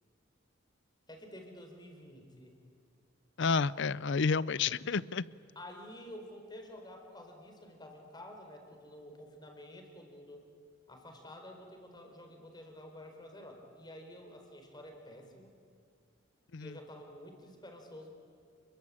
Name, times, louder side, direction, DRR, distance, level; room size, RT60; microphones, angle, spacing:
voice 1, 1.1-2.6 5.5-10.4 10.9-15.5 16.6-18.1, left 1 dB, 20° left, 4 dB, 4.5 m, -50 dB
voice 2, 3.4-5.2 16.5-16.8, left 5 dB, 65° left, 20 dB, 0.6 m, -30 dB
29.0 x 22.5 x 8.7 m, 2.3 s
head